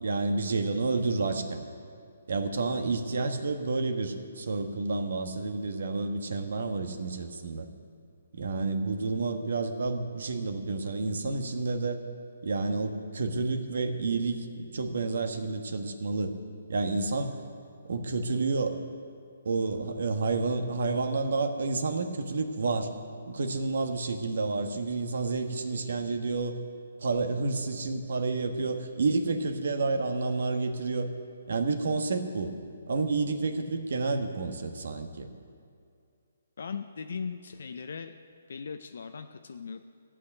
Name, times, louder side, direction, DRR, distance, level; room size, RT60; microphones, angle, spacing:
voice 1, 0.0-1.6 2.3-7.7 8.3-12.0 12.4-14.5 14.7-16.4 16.7-17.4 17.8-18.8 19.4-22.9 23.3-26.6 27.0-31.1 31.5-32.5 32.9-35.3, right 3 dB, 70° right, 7 dB, 1.3 m, -30 dB
voice 2, 36.6-38.1 38.5-39.8, left 5 dB, 70° left, 7 dB, 0.5 m, -38 dB
15.0 x 6.3 x 9.1 m, 2.3 s
hypercardioid pair, 155°, 0 cm